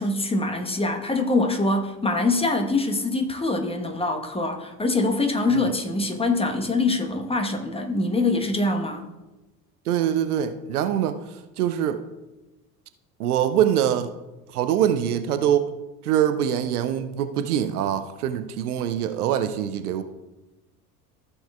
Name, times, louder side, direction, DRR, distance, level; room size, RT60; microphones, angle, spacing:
voice 1, 0.0-9.0, left 2 dB, 10° left, 1.1 m, -24 dB
voice 2, 9.9-12.0 13.2-14.1 14.5-15.7 16.0-20.0, right 10 dB, 65° right, 0.8 m, -24 dB
15.0 x 7.1 x 2.3 m
figure-of-eight pair, 65°, 49 cm